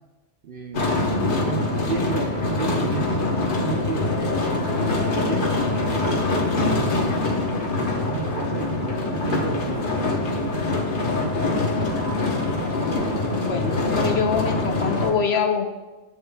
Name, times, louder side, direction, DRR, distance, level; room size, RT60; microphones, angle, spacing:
voice 1, 0.4-1.0 1.4-4.2 4.8-5.5 6.8-7.4 7.7-10.6 11.4-12.1, right 7 dB, 55° right, 4 dB, 0.7 m, -33 dB
sound 1, 0.7-15.1, left 2 dB, 45° left, 1.1 m, -24 dB
voice 2, 13.4-15.7, left 6 dB, 60° left, 6 dB, 0.9 m, -24 dB
11.5 x 8.0 x 2.2 m, 1.1 s
omnidirectional pair, 1.3 m